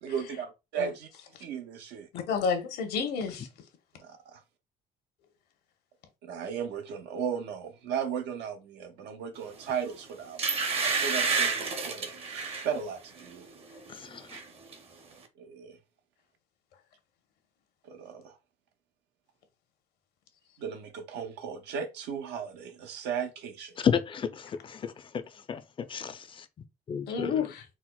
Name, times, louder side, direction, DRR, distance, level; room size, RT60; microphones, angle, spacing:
voice 1, 0.0-1.1 1.4-2.1 4.0-4.4 6.2-10.4 10.8-13.5 15.4-15.8 17.8-18.4 20.6-23.8, right 7 dB, 85° right, 0.7 m, -36 dB
voice 2, 2.1-3.5 27.1-27.6, left 6 dB, 75° left, 0.9 m, -30 dB
sound 1, 9.7-9.9 10.4-12.7 13.2-13.4 13.7-14.4 14.7-14.8, right 5 dB, 35° right, 0.7 m, -29 dB
voice 3, 13.9-14.2 23.8-24.9 25.5-25.6 25.9-26.2 26.9-27.4, left 7 dB, 30° left, 0.4 m, -30 dB
4.2 x 2.0 x 2.3 m
cardioid pair, 110°, 17 cm